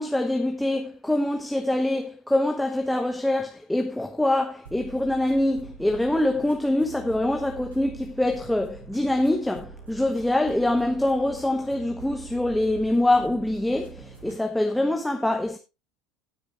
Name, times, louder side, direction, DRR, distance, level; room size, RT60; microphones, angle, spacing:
voice 1, 0.0-15.6, left 1 dB, 5° left, 1.3 m, -24 dB
sound 1, 4.6-14.4, right 6 dB, 75° right, 5.9 m, -45 dB
19.0 x 6.6 x 3.2 m
figure-of-eight pair, 70°, 0 cm